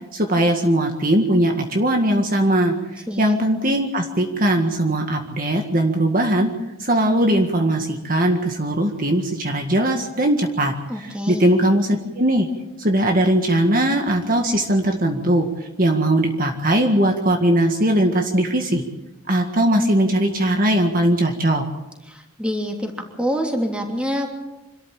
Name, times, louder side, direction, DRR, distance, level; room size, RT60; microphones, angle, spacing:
voice 1, 0.1-6.5 6.8-12.5 12.8-18.8 19.3-21.7, right 1 dB, 40° right, 3 dB, 1.8 m, -20 dB
voice 2, 10.9-11.5 22.1-22.9 23.2-24.3, equal, 5° right, 2 dB, 3.1 m, -26 dB
26.0 x 13.5 x 9.0 m, 0.99 s
head